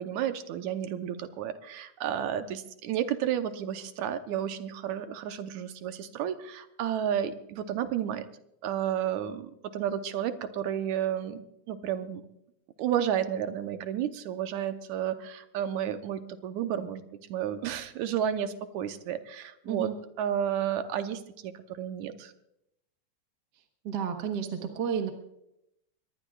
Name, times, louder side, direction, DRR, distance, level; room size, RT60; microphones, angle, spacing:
voice 1, 0.0-8.3 8.6-11.4 11.7-12.2 12.8-17.0 17.3-19.9 20.2-21.5 21.8-22.3, right 10 dB, 80° right, 8 dB, 2.2 m, -31 dB
voice 2, 23.8-25.1, right 7 dB, 50° right, 4 dB, 1.4 m, -31 dB
23.5 x 19.0 x 2.4 m, 0.81 s
omnidirectional pair, 3.4 m